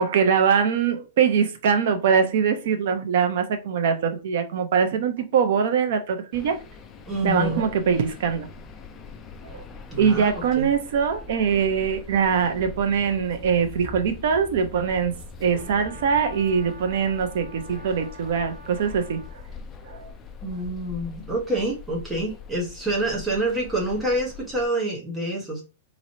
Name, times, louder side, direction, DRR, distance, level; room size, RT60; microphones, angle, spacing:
voice 1, 0.0-6.6 7.2-8.5 9.4-9.6 10.0-19.4 19.8-20.1, right 6 dB, 55° right, 0.8 m, -23 dB
sound 1, 6.3-24.7, left 4 dB, 15° left, 0.4 m, -42 dB
voice 2, 7.1-7.7 9.9-10.7 20.4-25.6, right 1 dB, 10° right, 1.1 m, -27 dB
Brass instrument, 15.5-19.4, right 2 dB, 25° right, 1.9 m, -46 dB
3.9 x 3.1 x 2.7 m
supercardioid pair, 175°, 0 cm